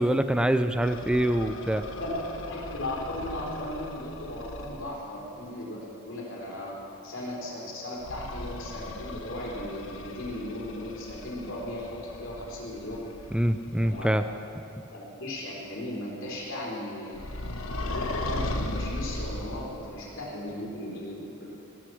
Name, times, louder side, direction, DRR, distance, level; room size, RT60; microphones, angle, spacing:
voice 1, 0.0-1.8 13.3-14.2, right 1 dB, 5° right, 10 dB, 0.4 m, -25 dB
sound 1, 0.8-4.9 8.0-14.3 17.1-20.0, left 2 dB, 85° left, 1.1 m, -37 dB
voice 2, 1.9-6.8 7.0-13.0 13.8-14.2 14.9-17.2 17.8-21.5, left 1 dB, 70° left, -5 dB, 3.8 m, -37 dB
19.0 x 7.7 x 6.4 m, 2.9 s
head